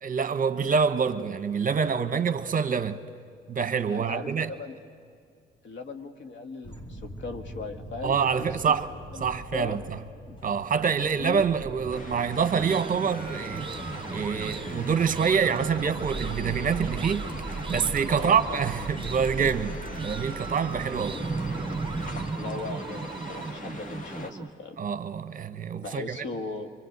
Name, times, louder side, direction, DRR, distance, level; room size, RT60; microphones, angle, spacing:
voice 1, 0.0-3.0 3.5-4.5 8.0-8.9 9.2-9.8 10.4-13.7 14.1-21.2 24.8-26.2, right 6 dB, 45° right, 1.0 m, -26 dB
voice 2, 3.9-4.7 5.6-8.5 8.8-8.9 9.1-9.8 11.1-11.4 18.1-18.6 22.4-24.8 25.8-26.7, left 3 dB, 70° left, 1.9 m, -38 dB
sound 1, 6.6-22.3, right 1 dB, 25° left, 2.2 m, -40 dB
sound 2, 11.9-24.3, left 2 dB, 40° left, 2.3 m, -42 dB
sound 3, 12.4-24.5, right 4 dB, 25° right, 0.6 m, -37 dB
25.0 x 24.5 x 8.1 m
cardioid pair, 90°, 20 cm